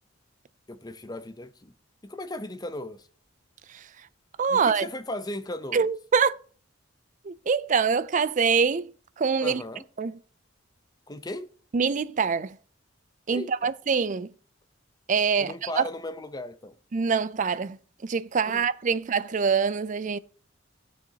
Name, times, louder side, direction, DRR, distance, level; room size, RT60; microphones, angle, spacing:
voice 1, 0.7-1.7 2.0-3.1 4.5-5.9 9.4-9.8 11.1-11.5 13.3-13.7 15.4-16.8 18.4-18.6, left 1 dB, 20° left, 0.8 m, -36 dB
voice 2, 4.4-4.9 5.7-6.4 7.2-9.6 10.0-10.2 11.7-12.6 13.3-14.3 15.1-15.8 16.9-20.2, right 5 dB, 40° right, 0.4 m, -25 dB
15.5 x 6.4 x 2.9 m
head